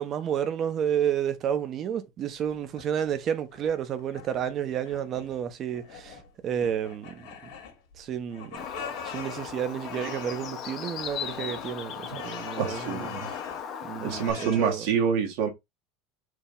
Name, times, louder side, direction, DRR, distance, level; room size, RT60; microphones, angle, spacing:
voice 1, 0.0-7.3 8.0-8.7 9.0-13.4 13.8-14.9, right 9 dB, 45° right, 1.0 m, -31 dB
sound 1, 2.2-3.1 3.5-4.5 4.8-5.4 5.7-6.3 6.6-8.0 8.3-10.5 10.9-13.7 14.1-14.7, left 6 dB, 65° left, 2.1 m, -43 dB
Bird, 8.6-14.3, left 7 dB, 45° left, 1.1 m, -37 dB
voice 2, 12.6-13.3 14.0-15.5, right 7 dB, 65° right, 1.5 m, -27 dB
4.7 x 2.9 x 3.9 m
hypercardioid pair, 85°, 0 cm